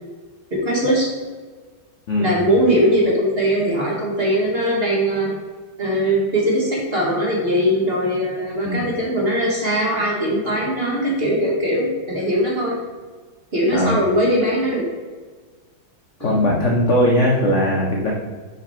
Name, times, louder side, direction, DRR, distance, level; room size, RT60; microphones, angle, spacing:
voice 1, 0.5-1.1 2.2-5.3 5.8-12.8 13.5-14.8 16.2-16.4, equal, 35° right, -3 dB, 1.2 m, -20 dB
voice 2, 2.1-2.4 8.6-8.9 13.7-14.0 16.2-18.1, left 1 dB, 75° left, -2 dB, 0.6 m, -19 dB
5.3 x 5.1 x 4.3 m, 1.4 s
omnidirectional pair, 2.4 m